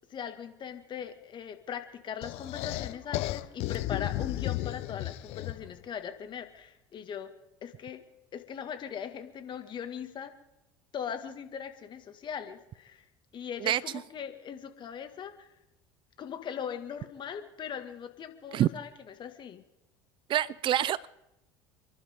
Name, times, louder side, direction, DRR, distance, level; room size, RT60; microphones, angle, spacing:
voice 1, 0.1-7.3 7.6-8.0 8.3-10.3 10.9-13.0 13.3-15.5 16.2-19.6, left 8 dB, 45° left, 8 dB, 2.0 m, -40 dB
sound 1, 2.2-5.8, left 16 dB, 65° left, 0.9 m, -34 dB
voice 2, 20.3-21.1, right 12 dB, 45° right, 21 dB, 0.5 m, -26 dB
30.0 x 11.5 x 3.7 m, 0.91 s
hypercardioid pair, 75°, 11 cm